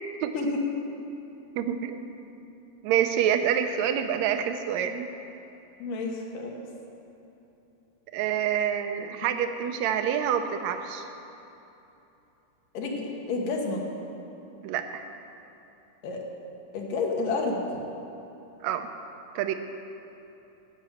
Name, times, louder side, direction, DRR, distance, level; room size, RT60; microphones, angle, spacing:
voice 1, 1.6-2.0 2.8-5.1 8.1-11.1 14.6-15.0 18.6-18.9 19.4-19.5, right 9 dB, 75° right, 7 dB, 1.8 m, -27 dB
voice 2, 5.8-6.6 12.7-13.8 16.0-16.2 16.7-17.8, left 3 dB, 85° left, -1 dB, 3.1 m, -30 dB
15.0 x 6.0 x 7.9 m, 3.0 s
omnidirectional pair, 3.8 m